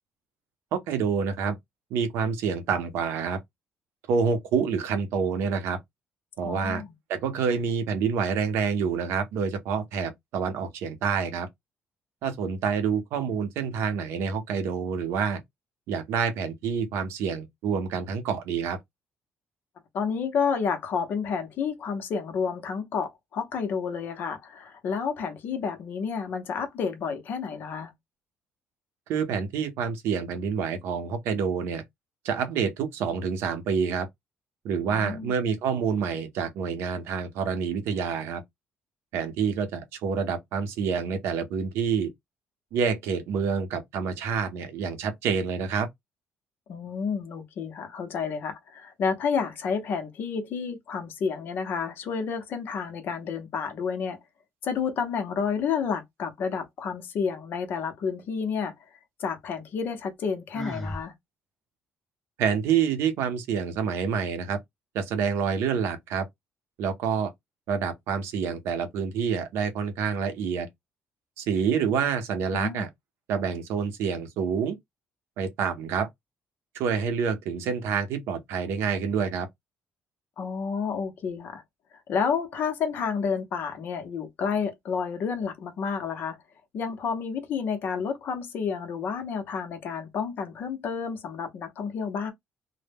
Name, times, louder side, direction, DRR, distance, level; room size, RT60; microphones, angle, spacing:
voice 1, 0.7-1.6 1.9-3.4 4.1-5.8 6.4-6.8 7.1-11.5 12.2-15.4 15.9-18.8 29.1-31.8 32.2-34.1 34.6-38.4 39.1-42.1 42.7-45.9 62.4-64.6 64.9-66.3 66.8-67.3 67.7-70.7 71.4-72.9 73.3-74.8 75.4-76.1 76.7-79.5, right 6 dB, 90° right, 0.6 m, -27 dB
voice 2, 6.4-6.9 19.9-27.9 34.9-35.3 46.7-54.2 54.6-58.7 59.2-61.1 72.5-72.8 80.4-81.6 82.1-86.4 86.7-92.3, left 6 dB, 50° left, 0.6 m, -30 dB
Sigh, 60.5-61.0, left 1 dB, 5° left, 0.6 m, -34 dB
2.1 x 2.0 x 3.3 m
cardioid pair, 170°, 4 cm